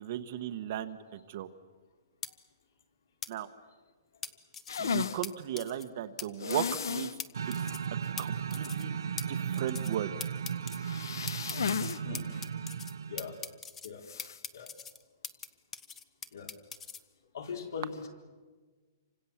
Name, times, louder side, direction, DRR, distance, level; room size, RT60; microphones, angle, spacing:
voice 1, 0.0-1.5 3.3-3.5 4.8-7.2 7.5-7.6 8.2-9.0 9.3-10.2, right 11 dB, 30° right, 10 dB, 1.1 m, -36 dB
sound 1, 2.2-2.3 3.2-3.3 4.2-4.8 5.2-5.3 5.6-5.8 6.2-6.3 6.5-6.8 7.2-7.3 7.5-7.9 8.2-8.3 8.5-8.8 9.2-9.3 9.5-10.0 10.2-10.8 11.3-12.9 13.2-13.9 14.2-15.5 15.7-17.0, left 6 dB, 10° left, 0.7 m, -41 dB
sound 2, 4.7-5.2 6.4-7.2 7.5-7.6 8.0-8.1 10.8-12.0 12.3-12.4 14.0-14.4, left 7 dB, 80° left, 0.9 m, -34 dB
sound 3, 7.3-13.5, right 7 dB, 85° right, 0.9 m, -36 dB
voice 2, 17.3-17.9, left 7 dB, 60° left, 5 dB, 4.2 m, -40 dB
28.0 x 25.5 x 7.2 m, 1.4 s
hypercardioid pair, 180°, 2 cm